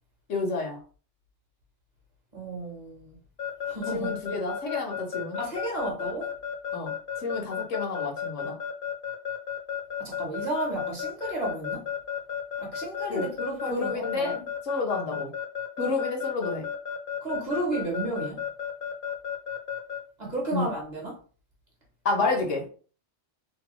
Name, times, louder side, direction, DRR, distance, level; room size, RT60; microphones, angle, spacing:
voice 1, 0.3-0.8 3.9-5.4 6.7-6.9 7.2-8.6 13.1-13.2 13.7-14.4 14.6-15.3 15.8-16.7 20.5-20.7 22.0-22.7, left 3 dB, 85° left, 1.2 m, -29 dB
voice 2, 2.3-3.2 3.6-4.2 5.4-6.3 10.0-11.9 12.6-14.5 17.2-18.4 20.2-21.2, right 2 dB, 40° right, 1.0 m, -33 dB
Keyboard (musical) / Alarm, 3.4-20.0, left 8 dB, 55° left, 0.7 m, -32 dB
3.0 x 2.2 x 2.9 m
omnidirectional pair, 1.2 m